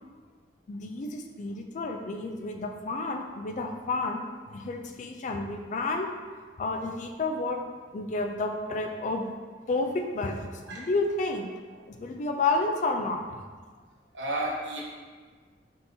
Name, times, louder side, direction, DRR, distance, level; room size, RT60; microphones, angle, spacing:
voice 1, 0.7-4.3 4.5-6.1 6.6-7.6 7.9-9.3 9.7-11.5 11.9-13.2, left 3 dB, 45° left, 4 dB, 0.3 m, -30 dB
voice 2, 14.1-14.8, right 1 dB, 85° right, -2 dB, 0.8 m, -32 dB
4.1 x 3.7 x 2.7 m, 1.5 s
head